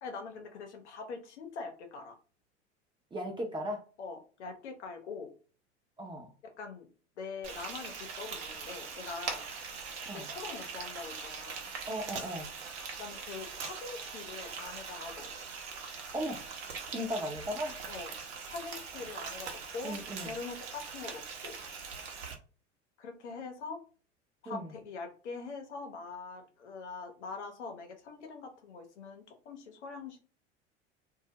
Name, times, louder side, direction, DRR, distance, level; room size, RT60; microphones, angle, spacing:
voice 1, 0.0-2.2 4.0-5.3 6.4-6.9 7.2-9.5 10.1-11.6 13.0-15.3 17.9-18.1 18.5-21.6 23.0-23.8 24.4-30.2, left 4 dB, 70° left, 0.8 m, -43 dB
voice 2, 3.1-3.8 6.0-6.3 10.1-10.3 11.9-12.5 16.1-16.4 16.9-17.8 19.8-20.4 24.5-24.7, equal, 15° right, 0.6 m, -36 dB
Frying (food), 7.4-22.3, right 5 dB, 60° right, 0.8 m, -42 dB
2.3 x 2.0 x 2.8 m
figure-of-eight pair, 75°, 35 cm